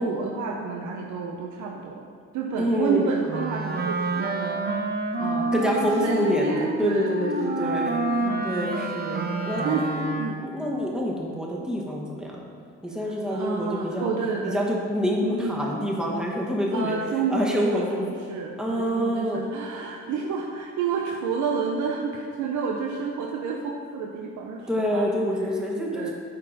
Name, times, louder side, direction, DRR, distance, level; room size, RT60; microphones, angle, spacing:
voice 1, 0.0-2.1 2.3-4.8 5.2-8.5 9.6-9.8 10.2-10.8 13.0-14.6 15.2-15.7 16.7-25.0 25.9-26.1, right 5 dB, 75° right, 0 dB, 0.7 m, -30 dB
voice 2, 2.6-3.0 5.5-8.0 8.4-10.0 10.4-12.4 12.8-14.1 14.4-17.0 17.3-18.0 18.6-19.5 24.7-26.1, equal, ahead, -3 dB, 1.4 m, -27 dB
Wind instrument woodwind instrument, 3.3-10.5, right 2 dB, 30° right, 0.8 m, -28 dB
8.6 x 4.4 x 4.1 m, 2.2 s
cardioid pair, 90°, 30 cm